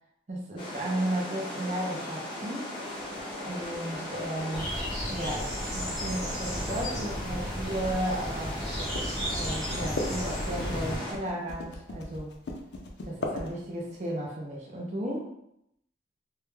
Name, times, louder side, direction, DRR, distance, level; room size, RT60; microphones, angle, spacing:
voice 1, 0.3-2.7 3.4-4.8 5.1-8.6 9.3-12.4 13.0-15.3, right 1 dB, 40° right, -3 dB, 0.5 m, -34 dB
sound 1, 0.6-11.1, left 1 dB, 30° left, 0.6 m, -38 dB
sound 2, 3.0-14.0, left 2 dB, 70° left, 0.4 m, -40 dB
sound 3, 4.5-11.0, equal, ahead, 0.9 m, -34 dB
2.2 x 2.1 x 3.1 m, 0.78 s
head